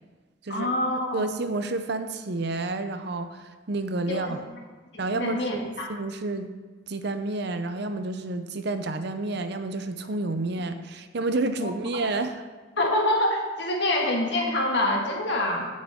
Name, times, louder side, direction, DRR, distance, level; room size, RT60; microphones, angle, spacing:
voice 1, 0.5-1.3 4.1-4.4 4.9-5.9 11.5-11.7 12.8-15.6, left 1 dB, 60° left, -1 dB, 2.0 m, -26 dB
voice 2, 1.1-4.4 5.0-6.5 6.9-12.4, right 2 dB, 55° right, 9 dB, 0.6 m, -30 dB
16.0 x 6.4 x 3.6 m, 1.3 s
head